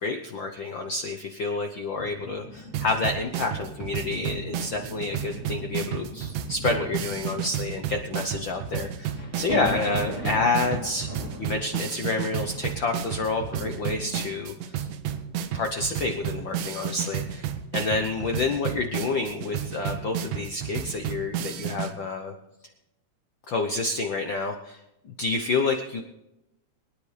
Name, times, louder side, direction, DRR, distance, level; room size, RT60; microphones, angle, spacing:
voice 1, 0.0-11.1 11.4-14.5 14.8-14.9 15.5-22.3 23.5-26.0, left 3 dB, 80° left, 4 dB, 1.0 m, -29 dB
sound 1, 1.9-14.7 15.4-15.6, equal, 25° left, 2.7 m, -40 dB
sound 2, 2.7-21.9, right 9 dB, 90° right, 2.5 m, -32 dB
24.0 x 10.0 x 3.3 m, 0.92 s
omnidirectional pair, 3.5 m